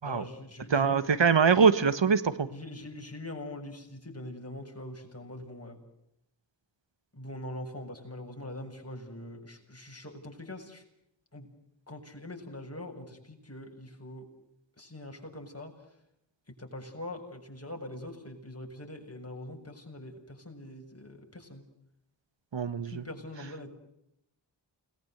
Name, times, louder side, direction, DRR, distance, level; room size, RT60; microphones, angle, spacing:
voice 1, 0.0-1.1 2.5-5.8 7.1-10.8 11.3-11.5 11.9-14.3 14.8-15.7 16.6-21.6 22.8-23.7, left 1 dB, 35° left, 2 dB, 7.2 m, -43 dB
voice 2, 0.7-2.5 22.5-23.0, right 5 dB, 85° right, 14 dB, 1.5 m, -23 dB
30.0 x 20.5 x 8.1 m, 0.80 s
wide cardioid pair, 55°, 43 cm